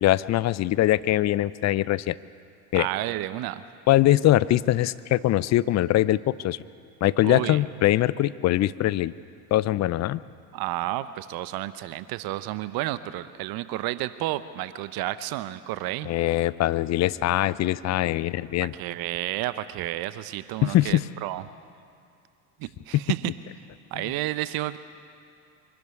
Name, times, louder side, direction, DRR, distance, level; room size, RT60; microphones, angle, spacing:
voice 1, 0.0-2.2 2.7-2.9 3.9-6.6 7.0-9.1 9.5-10.2 16.1-18.7 20.6-21.0 24.0-24.1, left 14 dB, 40° left, 18 dB, 0.6 m, -22 dB
voice 2, 2.7-3.6 7.2-7.6 10.5-16.1 18.6-21.4 22.6-23.3 23.9-24.8, right 15 dB, 55° right, 14 dB, 0.9 m, -31 dB
24.0 x 12.5 x 9.7 m, 2.4 s
hypercardioid pair, 75°, 44 cm